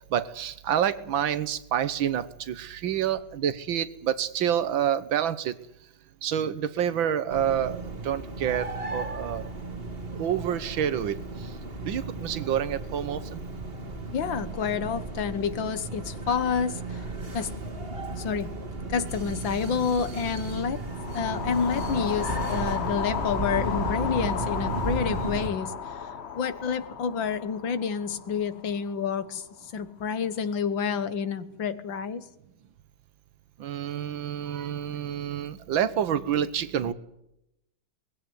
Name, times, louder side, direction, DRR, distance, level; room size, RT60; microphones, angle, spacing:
voice 1, 0.1-5.5 6.2-9.4 10.1-11.2 11.9-13.4 33.6-36.9, right 9 dB, 75° right, 15 dB, 1.8 m, -28 dB
sound 1, 7.3-25.5, right 2 dB, 30° right, 2.1 m, -34 dB
voice 2, 14.1-17.0 17.3-17.6 18.2-18.5 18.9-20.8 21.1-29.4 29.7-32.2, left 6 dB, 70° left, 13 dB, 2.0 m, -29 dB
sound 2, 20.9-29.1, left 7 dB, 45° left, 0.9 m, -34 dB
20.5 x 16.0 x 9.4 m, 0.85 s
omnidirectional pair, 2.2 m